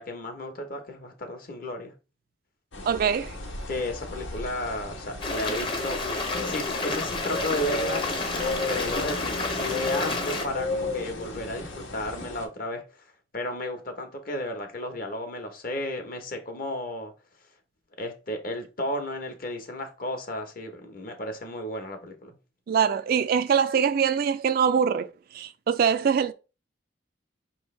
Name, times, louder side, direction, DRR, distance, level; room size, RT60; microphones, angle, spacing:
voice 1, 0.0-1.9 3.7-6.0 6.4-8.1 8.4-12.8 13.3-17.1 18.0-22.4, left 1 dB, 50° left, 1.0 m, -33 dB
sound 1, 2.7-12.5, left 2 dB, 85° left, 1.1 m, -34 dB
voice 2, 2.8-3.4 22.7-26.3, right 7 dB, 50° right, 0.3 m, -23 dB
Stream, 5.2-10.5, left 3 dB, 25° left, 0.8 m, -30 dB
4.9 x 3.1 x 3.2 m
head